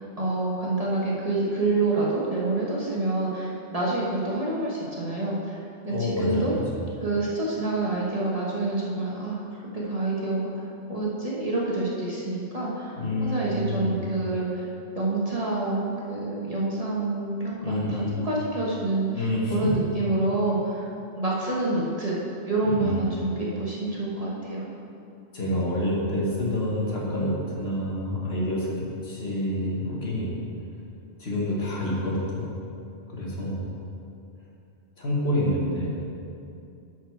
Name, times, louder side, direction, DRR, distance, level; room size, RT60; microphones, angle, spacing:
voice 1, 0.2-5.6 5.8-6.5 7.0-9.4 9.7-10.5 10.9-12.9 13.2-14.6 14.9-20.9 21.2-22.2 22.5-24.6, right 2 dB, 30° right, -6 dB, 1.2 m, -27 dB
voice 2, 5.9-6.6 13.0-14.0 17.6-18.2 19.1-19.5 22.6-23.0 23.4-23.5 25.3-28.7 29.0-30.3 31.2-32.5 33.1-33.6 35.0-35.9, left 1 dB, 55° left, -4 dB, 1.7 m, -27 dB
11.0 x 4.7 x 4.6 m, 2.6 s
omnidirectional pair, 1.3 m